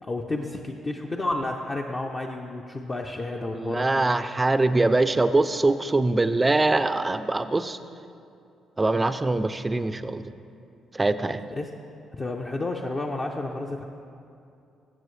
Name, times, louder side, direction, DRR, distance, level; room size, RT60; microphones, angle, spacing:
voice 1, 0.0-4.0 11.6-11.7 12.2-13.8, left 2 dB, 30° left, 0 dB, 0.6 m, -31 dB
voice 2, 3.5-7.8 8.8-10.2 10.9-11.4, right 2 dB, 20° right, 11 dB, 0.4 m, -23 dB
15.0 x 7.4 x 3.2 m, 2.6 s
cardioid pair, 90°, 0 cm